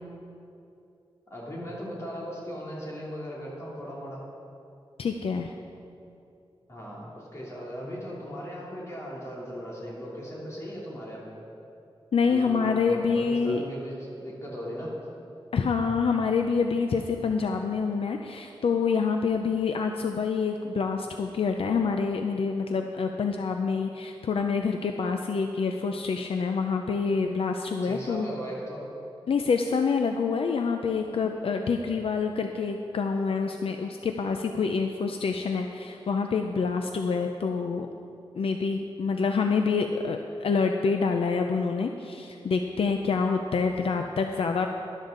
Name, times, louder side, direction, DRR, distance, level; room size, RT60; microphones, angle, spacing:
voice 1, 1.3-4.2 6.7-11.3 12.2-14.9 27.8-28.8, equal, 30° left, -5 dB, 2.9 m, -38 dB
voice 2, 5.0-5.5 12.1-13.6 15.5-28.3 29.3-37.9 38.3-44.7, left 5 dB, 70° left, 4 dB, 0.5 m, -27 dB
12.5 x 11.5 x 3.9 m, 2.6 s
wide cardioid pair, 145°, 10 cm